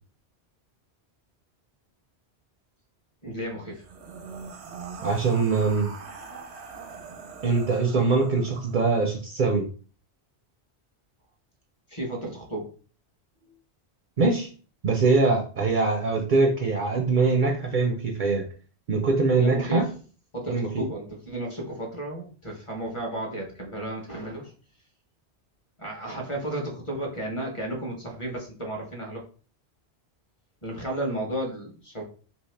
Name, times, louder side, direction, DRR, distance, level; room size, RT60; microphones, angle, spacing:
voice 1, 3.2-3.8 11.9-12.7 13.4-13.5 19.4-20.0 20.3-24.5 25.8-29.2 30.6-32.0, right 1 dB, 30° left, 0 dB, 0.8 m, -33 dB
sound 1, 3.7-9.0, right 5 dB, 85° right, 1.0 m, -42 dB
voice 2, 5.0-5.9 7.4-9.6 14.2-14.5 14.8-18.4 18.9-19.8 20.5-20.8, right 4 dB, 55° right, 3 dB, 0.6 m, -23 dB
2.9 x 2.7 x 3.2 m, 0.39 s
omnidirectional pair, 1.1 m